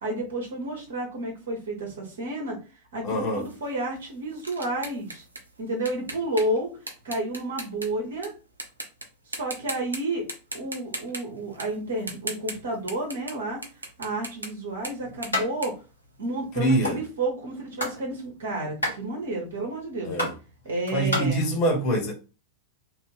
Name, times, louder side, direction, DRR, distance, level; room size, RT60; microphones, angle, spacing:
voice 1, 0.0-2.6 2.9-5.2 5.6-6.7 7.0-8.3 9.3-10.3 10.5-13.6 14.0-15.8 16.2-20.2 20.6-21.5, right 1 dB, 60° right, 0.9 m, -31 dB
voice 2, 3.0-3.4 16.6-17.0 20.0-20.3 20.9-22.1, right 1 dB, 40° left, 1.0 m, -24 dB
sound 1, 3.4-8.3 8.6-9.0 9.3-10.0 10.3-16.6, right 2 dB, 80° right, 0.6 m, -38 dB
sound 2, 15.3-15.5 15.8-15.9 16.1-17.0 17.5-18.0 18.3-21.2, left 1 dB, 75° left, 1.3 m, -29 dB
3.0 x 2.6 x 3.1 m
figure-of-eight pair, 90°, 0 cm